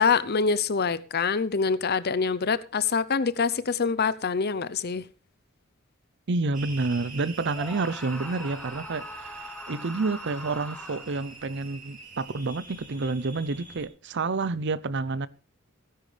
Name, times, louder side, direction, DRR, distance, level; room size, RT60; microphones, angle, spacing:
voice 1, 0.0-5.0, left 5 dB, 50° left, 0.7 m, -25 dB
voice 2, 6.3-15.3, right 3 dB, 55° right, 0.6 m, -29 dB
sound 1, 6.5-13.9, right 4 dB, 40° right, 3.6 m, -45 dB
Screaming, 7.5-11.3, left 1 dB, 5° left, 1.0 m, -41 dB
17.0 x 10.5 x 3.4 m
head